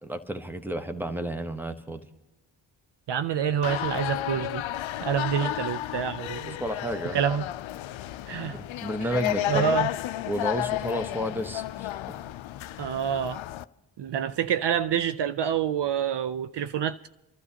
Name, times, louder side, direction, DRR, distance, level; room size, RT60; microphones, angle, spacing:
voice 1, 0.0-2.0 5.4-5.6 6.5-7.2 8.4-9.8 10.3-11.9, equal, 5° right, 1.1 m, -32 dB
voice 2, 3.1-4.6 5.0-6.6 7.1-7.5 8.3-8.6 9.0-9.1 9.5-9.9 12.8-13.4 14.0-17.1, right 8 dB, 60° right, 0.6 m, -27 dB
sound 1, 3.6-13.6, left 13 dB, 75° left, 0.5 m, -32 dB
28.0 x 12.0 x 2.9 m
cardioid pair, 50°, 48 cm